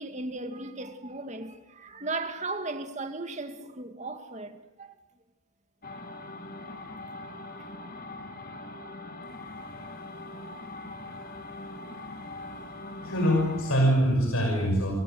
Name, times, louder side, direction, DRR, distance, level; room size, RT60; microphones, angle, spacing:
voice 1, 0.0-4.9 6.7-6.8, right 2 dB, 30° right, 2.1 m, -36 dB
sound 1, 5.8-13.8, left 2 dB, 40° left, 2.2 m, -41 dB
voice 2, 13.0-15.0, equal, 80° left, 6.1 m, -24 dB
29.0 x 25.5 x 7.9 m
head